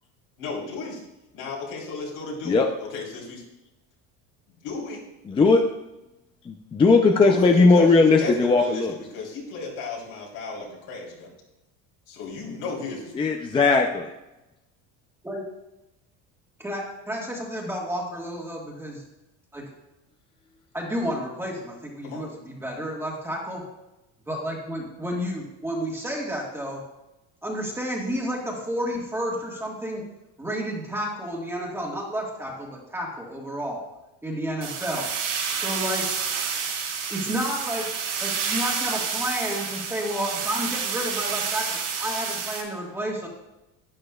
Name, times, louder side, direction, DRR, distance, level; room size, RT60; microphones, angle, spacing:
voice 1, 0.4-1.0 1.3-3.4 4.5-5.0 7.2-11.3 12.1-13.4 22.0-22.3, left 4 dB, 70° left, -2 dB, 3.5 m, -34 dB
voice 2, 5.3-5.6 6.5-8.9 13.2-14.1, left 3 dB, 15° left, 3 dB, 0.5 m, -18 dB
voice 3, 16.6-19.0 19.5-19.6 20.7-23.6 24.3-26.8 27.4-30.0 30.4-33.8 34.2-35.1 35.5-36.1 37.1-37.9 38.2-43.3, equal, 5° right, -2 dB, 1.5 m, -31 dB
sound 1, 34.6-42.6, right 6 dB, 65° right, 3.1 m, -29 dB
11.5 x 9.6 x 2.3 m, 0.96 s
cardioid pair, 145°, 36 cm